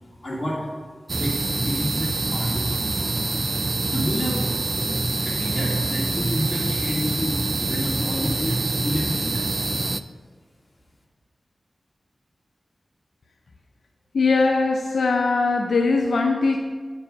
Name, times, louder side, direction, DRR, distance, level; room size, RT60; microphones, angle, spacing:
voice 1, 0.2-0.7 1.1-3.1 3.9-4.5 5.2-9.4, equal, 40° left, -4 dB, 2.4 m, -30 dB
sound 1, 1.1-10.0, right 2 dB, 45° right, 0.3 m, -25 dB
sound 2, 1.5-7.5, right 2 dB, 75° right, 1.0 m, -47 dB
voice 2, 14.1-16.6, left 3 dB, 85° left, 3 dB, 0.4 m, -20 dB
8.4 x 4.7 x 5.1 m, 1.5 s
cardioid pair, 50°, 0 cm